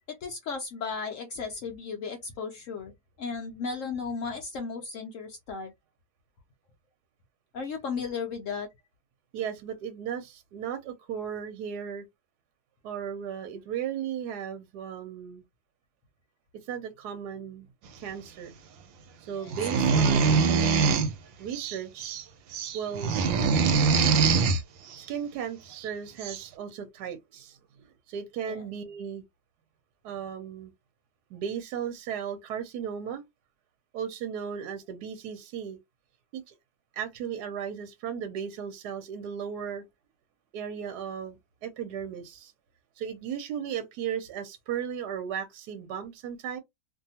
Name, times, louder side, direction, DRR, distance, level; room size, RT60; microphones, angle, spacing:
voice 1, 0.1-2.9 3.2-5.7 7.5-8.7 19.3-19.5 28.5-28.6, left 5 dB, 75° left, 0.7 m, -35 dB
voice 2, 9.3-12.1 12.8-15.4 16.6-17.7 18.0-18.5 19.2-20.5 21.4-22.2 22.7-23.1 25.0-29.2 30.0-30.7 31.3-33.2 33.9-35.8 36.3-36.5 36.9-39.8 40.5-42.5 43.0-46.6, right 8 dB, 70° right, 1.1 m, -36 dB
sound 1, 19.5-21.1 21.5-22.2 22.5-24.6 25.8-25.9 26.2-26.5, right 5 dB, 90° right, 1.4 m, -23 dB
2.7 x 2.5 x 2.7 m
omnidirectional pair, 2.0 m